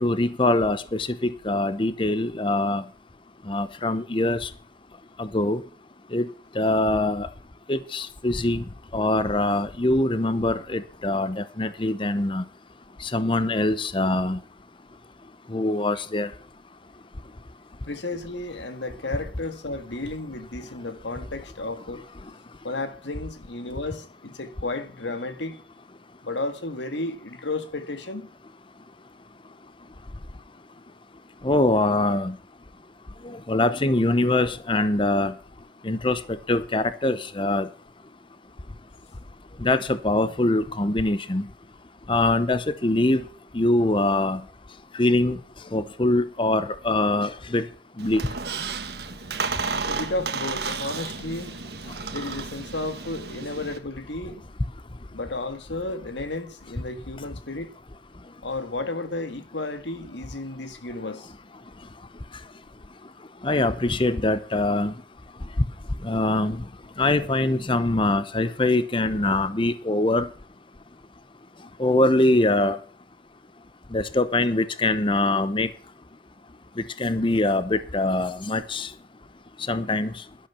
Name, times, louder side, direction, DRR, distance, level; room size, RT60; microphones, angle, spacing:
voice 1, 0.0-2.8 3.5-4.5 5.2-5.6 6.1-6.3 6.6-7.3 7.7-8.6 8.9-12.4 13.0-14.4 15.5-16.3 31.4-32.3 33.5-35.3 35.8-36.2 36.5-37.7 39.6-41.4 42.1-43.2 43.5-44.4 45.0-45.4 45.7-47.6 48.0-48.2 63.4-64.9 66.0-66.6 67.0-70.3 71.8-72.8 73.9-75.7 77.0-78.9 79.7-80.1, left 2 dB, 25° left, 0.8 m, -23 dB
voice 2, 17.8-22.0 22.6-25.6 26.2-28.3 49.9-51.5 52.1-54.4 55.1-57.7 58.4-61.3, left 2 dB, 75° left, 1.7 m, -33 dB
Squeak, 48.0-53.8, right 4 dB, 60° right, 1.6 m, -32 dB
12.0 x 11.5 x 5.7 m
head